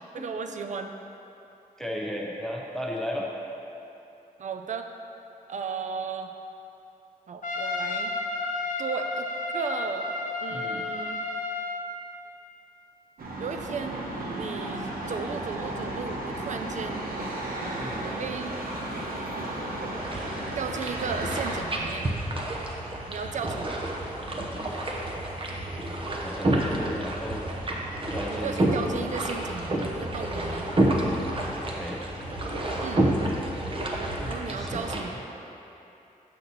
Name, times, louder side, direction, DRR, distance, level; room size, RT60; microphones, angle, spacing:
voice 1, 0.1-0.9 4.4-4.9 5.5-6.3 7.3-8.1 8.8-9.3 9.5-10.1 10.4-11.2 13.4-14.0 14.4-17.1 18.2-18.6 20.6-22.1 23.1-23.8 28.3-30.7 32.8-33.1 34.3-35.2, right 5 dB, 55° right, 6 dB, 0.5 m, -35 dB
voice 2, 1.8-3.3 10.5-10.9 17.8-18.1 26.2-27.5 28.1-28.6 31.7-32.0 34.2-35.0, equal, 5° left, -2 dB, 0.6 m, -35 dB
Trumpet, 7.4-11.9, left 3 dB, 60° left, 0.6 m, -31 dB
sound 1, 13.2-21.6, right 1 dB, 80° right, 1.0 m, -34 dB
sound 2, 19.9-35.0, right 1 dB, 35° right, 0.8 m, -29 dB
6.7 x 5.8 x 4.1 m, 2.9 s
cardioid pair, 80°, 15 cm